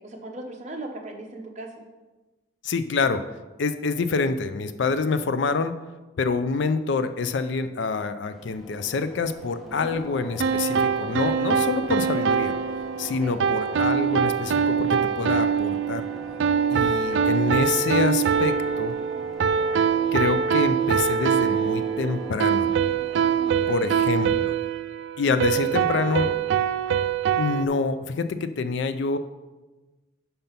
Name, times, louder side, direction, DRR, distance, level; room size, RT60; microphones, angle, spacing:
voice 1, 0.0-1.8 9.6-10.0 13.2-13.4 23.1-24.0 25.2-26.4, right 2 dB, 35° right, 2 dB, 0.8 m, -38 dB
voice 2, 2.6-3.3 3.6-5.7 6.2-12.5 13.0-16.1 16.7-18.9 20.1-22.7 23.7-24.6 25.2-26.3 27.4-29.2, left 4 dB, 65° left, 11 dB, 0.4 m, -26 dB
sound 1, 8.3-24.3, right 1 dB, ahead, 0.9 m, -40 dB
sound 2, 10.4-27.7, right 7 dB, 65° right, 0.3 m, -24 dB
5.5 x 5.3 x 5.7 m, 1.2 s
head